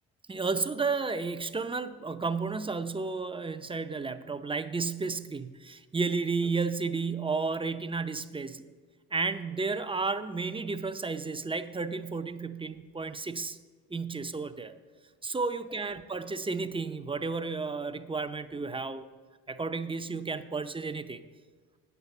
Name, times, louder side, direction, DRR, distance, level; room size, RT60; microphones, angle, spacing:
voice 1, 0.3-8.7 9.1-13.6 13.9-14.7 15.2-19.1 19.5-21.2, right 4 dB, 15° right, 10 dB, 0.6 m, -32 dB
8.9 x 8.2 x 7.1 m, 1.4 s
cardioid pair, 90°, 30 cm